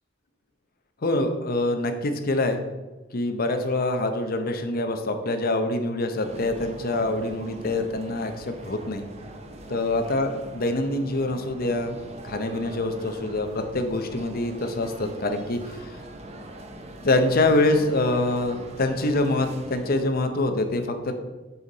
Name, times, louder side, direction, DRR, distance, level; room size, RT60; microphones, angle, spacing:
voice 1, 1.0-2.6 3.1-9.0 9.7-15.9 17.0-21.2, left 2 dB, 50° left, 6 dB, 0.7 m, -25 dB
sound 1, 6.2-20.0, right 1 dB, 35° right, 0.7 m, -41 dB
6.8 x 5.4 x 4.0 m, 1.2 s
head